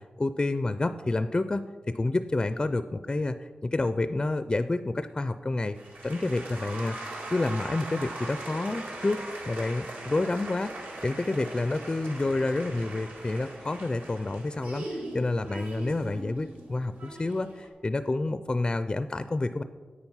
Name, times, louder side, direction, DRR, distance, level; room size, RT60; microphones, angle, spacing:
voice 1, 0.0-1.6 1.9-5.8 6.0-19.6, left 2 dB, 25° left, 11 dB, 0.4 m, -29 dB
sound 1, 5.7-17.7, right 2 dB, 75° right, 2.1 m, -40 dB
8.9 x 8.6 x 5.6 m, 1.5 s
wide cardioid pair, 105°, 3 cm